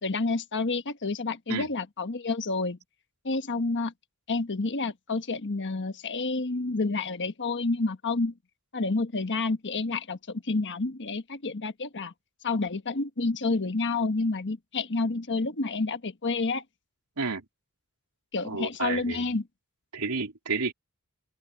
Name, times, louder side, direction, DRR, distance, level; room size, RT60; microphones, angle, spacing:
voice 1, 0.0-2.8 3.2-3.9 4.3-8.3 8.7-12.1 12.4-16.6 18.3-19.4, left 3 dB, 55° left, 1.3 m, -29 dB
voice 2, 18.4-19.2 19.9-20.7, right 4 dB, 80° right, 3.1 m, -31 dB
open air
head